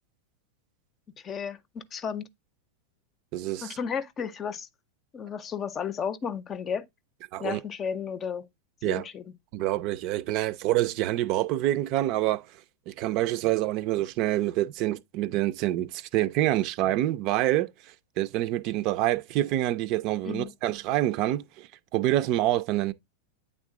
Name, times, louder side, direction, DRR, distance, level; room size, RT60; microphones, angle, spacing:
voice 1, 1.2-2.3 3.6-4.7 5.1-6.9 7.4-8.5 8.8-9.2 20.3-20.5, left 7 dB, 30° left, 0.7 m, -33 dB
voice 2, 3.3-3.8 7.3-7.6 8.8-9.0 9.5-12.5 12.9-22.9, right 14 dB, 50° right, 0.6 m, -27 dB
8.7 x 3.7 x 3.8 m
hypercardioid pair, 95°, 0 cm